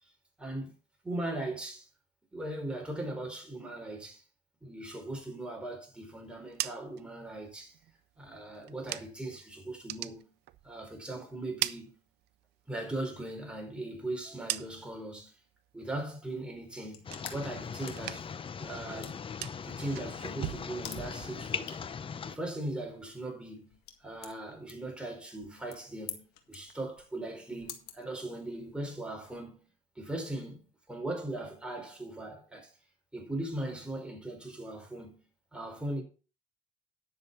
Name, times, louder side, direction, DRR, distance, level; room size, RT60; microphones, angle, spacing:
voice 1, 0.4-0.7 1.0-1.9 2.3-4.2 4.6-7.7 8.2-10.3 10.6-12.0 12.7-15.3 15.7-18.3 18.6-19.2 19.6-21.8 22.2-29.7 29.9-32.7 33.1-35.1 35.5-36.0, right 1 dB, 5° right, 4.8 m, -39 dB
sound 1, 6.3-9.4 9.7-11.0 11.3-12.6 13.0-15.1 15.5-16.0 16.3-17.6 17.9-18.5 18.8-21.6, right 16 dB, 80° right, 0.7 m, -41 dB
sound 2, 16.7-28.8, left 10 dB, 85° left, 1.9 m, -51 dB
sound 3, 17.0-22.4, left 6 dB, 30° left, 0.7 m, -40 dB
11.0 x 7.0 x 5.7 m
cardioid pair, 110°, 17 cm